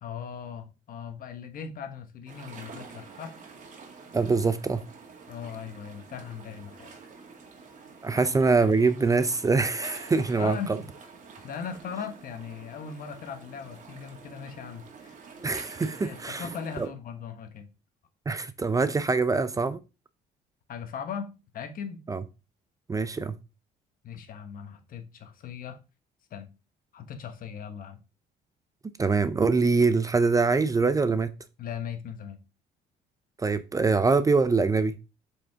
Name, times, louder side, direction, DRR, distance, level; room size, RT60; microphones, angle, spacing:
voice 1, 0.0-3.3 5.3-6.9 8.1-8.2 10.4-10.9 11.4-15.1 16.0-17.7 20.7-21.3 21.5-22.0 24.0-25.8 26.3-26.5 26.9-28.0 31.6-32.4, left 7 dB, 55° left, 1.4 m, -39 dB
sound 1, 2.3-16.9, right 5 dB, 50° right, 2.1 m, -48 dB
voice 2, 4.1-4.8 8.0-10.6 15.4-16.5 16.8-16.9 18.3-19.8 22.1-22.2 22.9-23.4 29.0-31.3 33.4-35.0, right 4 dB, 20° right, 0.5 m, -24 dB
7.4 x 5.1 x 3.6 m
cardioid pair, 110°, 17 cm